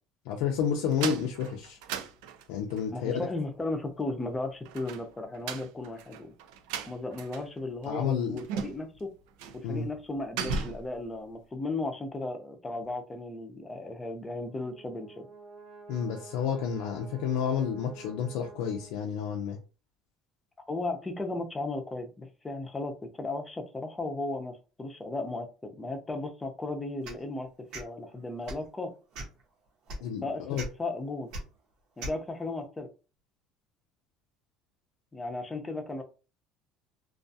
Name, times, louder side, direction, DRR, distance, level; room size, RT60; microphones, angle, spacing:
voice 1, 0.3-1.8 2.5-3.2 7.8-8.4 9.6-9.9 15.9-19.6 30.0-30.7, left 7 dB, 85° left, 0.4 m, -30 dB
Door Open and Close Lock, 0.9-2.8 4.6-7.6 7.8-7.9 8.4-9.0 9.4-9.6 9.9-10.9, right 6 dB, 90° right, 0.3 m, -37 dB
voice 2, 2.9-6.3 6.9-9.1 9.5-15.3 20.7-27.5 27.7-28.9 30.2-30.4 30.8-31.3 32.0-32.9 35.1-36.0, left 2 dB, 15° left, 0.5 m, -35 dB
Brass instrument, 14.3-19.4, right 4 dB, 35° right, 0.9 m, -50 dB
sound 1, 27.0-27.2 27.7-27.9 28.4-28.7 29.1-29.4 29.9-30.0 30.5-30.7 31.3-31.4 32.0-32.2, right 1 dB, 75° right, 0.9 m, -37 dB
2.3 x 2.3 x 2.6 m
cardioid pair, 135°, 0 cm